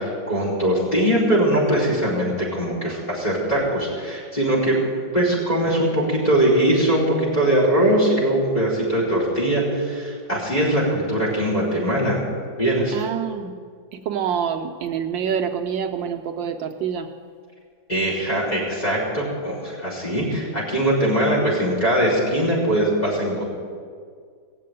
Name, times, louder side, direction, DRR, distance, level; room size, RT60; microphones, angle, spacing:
voice 1, 0.0-4.8 5.1-12.3 12.6-13.0 17.9-23.4, right 1 dB, 20° left, -4 dB, 4.8 m, -21 dB
voice 2, 12.9-13.5 13.9-17.1, right 8 dB, 75° right, 5 dB, 1.4 m, -26 dB
18.0 x 7.5 x 9.1 m, 2.1 s
omnidirectional pair, 2.1 m